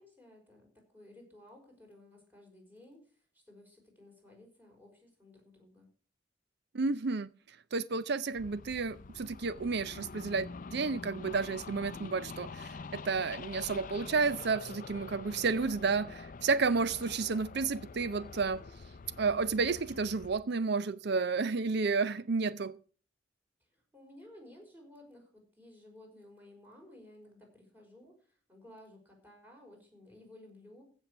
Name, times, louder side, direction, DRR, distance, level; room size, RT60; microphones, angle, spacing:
voice 1, 0.0-5.9 23.7-30.8, left 1 dB, 10° right, 5.3 m, -56 dB
voice 2, 6.7-7.3 7.7-18.6 19.2-22.8, right 4 dB, 60° right, 0.6 m, -31 dB
sound 1, 8.3-20.4, left 4 dB, 45° left, 0.5 m, -46 dB
15.5 x 6.4 x 6.9 m
head